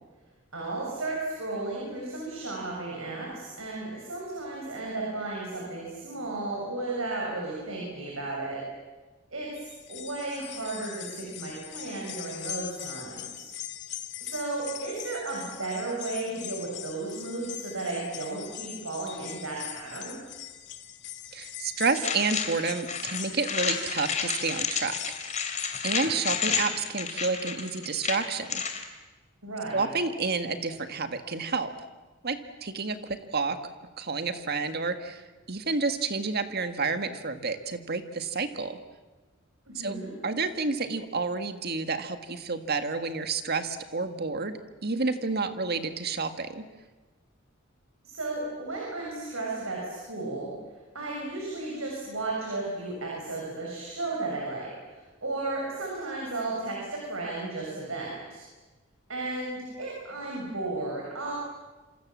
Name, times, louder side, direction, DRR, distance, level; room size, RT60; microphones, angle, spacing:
voice 1, 0.5-8.6 9.3-13.5 14.2-20.2 29.4-29.9 39.7-40.1 48.0-50.5 50.9-58.4 59.1-61.4, right 2 dB, 90° right, -2 dB, 7.4 m, -34 dB
sound 1, 9.6-26.9 27.3-27.4 28.5-28.6, left 12 dB, 60° left, 2.0 m, -42 dB
voice 2, 21.3-25.4 25.8-28.6 29.7-31.7 32.2-33.6 34.0-38.8 39.7-40.0 40.2-46.6, right 4 dB, 50° right, 8 dB, 1.9 m, -30 dB
sound 2, 21.9-28.8, left 6 dB, 35° left, 3.0 m, -31 dB
27.5 x 26.5 x 7.6 m, 1.2 s
head